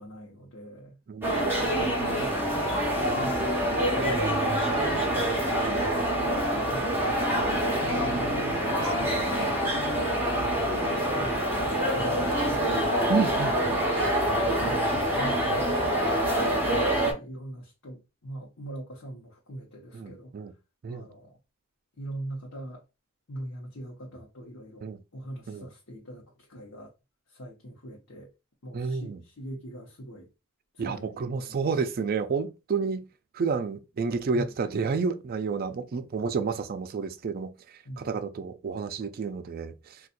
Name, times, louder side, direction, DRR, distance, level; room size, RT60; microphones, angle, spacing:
voice 1, 0.0-1.0 2.1-2.6 2.9-4.5 9.0-12.8 14.3-16.2 16.5-20.3 20.9-21.4 22.0-22.8 23.3-26.2 26.5-26.9 27.3-28.3 28.6-30.3 30.8-31.7 34.3-34.5 37.8-38.2, right 1 dB, 60° left, 0.8 m, -42 dB
voice 2, 1.1-1.5 7.1-7.2 8.3-9.3 13.1-13.8 16.7-16.9 19.9-20.5 20.8-21.1 24.8-25.0 25.5-25.7 28.7-29.2 30.8-33.0 33.3-37.5 38.0-40.0, right 5 dB, 45° right, 0.4 m, -30 dB
sound 1, 1.2-17.1, right 1 dB, 10° right, 1.0 m, -26 dB
4.1 x 2.3 x 2.5 m
head